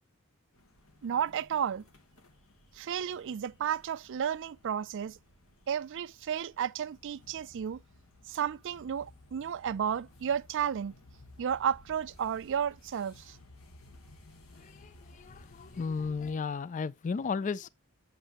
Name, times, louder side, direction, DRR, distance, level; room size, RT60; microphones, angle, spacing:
sound 1, 0.5-16.3, left 2 dB, 75° left, 1.4 m, -57 dB
voice 1, 1.0-1.8 2.7-5.2 5.7-7.8 8.3-10.9 11.4-13.4, right 8 dB, 60° right, 0.4 m, -32 dB
voice 2, 14.6-17.7, left 5 dB, 35° left, 0.3 m, -34 dB
8.0 x 6.6 x 2.9 m
head